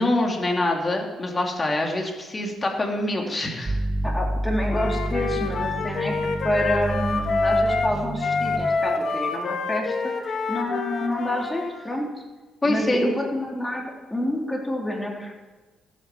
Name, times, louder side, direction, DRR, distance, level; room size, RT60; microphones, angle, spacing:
voice 1, 0.0-3.8 12.6-13.1, left 1 dB, 25° left, 1 dB, 3.0 m, -25 dB
sound 1, 3.7-8.7, right 1 dB, 35° right, 2.1 m, -29 dB
voice 2, 4.0-6.1 6.4-12.1 12.6-15.3, left 1 dB, 10° left, -1 dB, 3.7 m, -28 dB
Wind instrument woodwind instrument, 4.7-11.7, left 4 dB, 55° left, 1.8 m, -27 dB
14.0 x 8.9 x 7.4 m, 1.3 s
cardioid pair, 90°, 0 cm